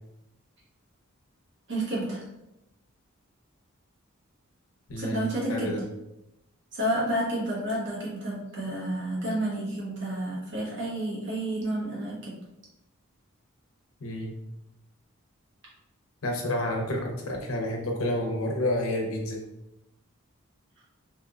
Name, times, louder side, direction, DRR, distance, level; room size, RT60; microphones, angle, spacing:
voice 1, 1.7-2.2 5.0-5.7 6.7-12.4, right 1 dB, 55° right, -6 dB, 1.2 m, -30 dB
voice 2, 4.9-5.8 14.0-14.3 16.2-19.4, left 1 dB, 80° left, 1 dB, 0.8 m, -29 dB
3.4 x 2.8 x 2.4 m, 0.88 s
head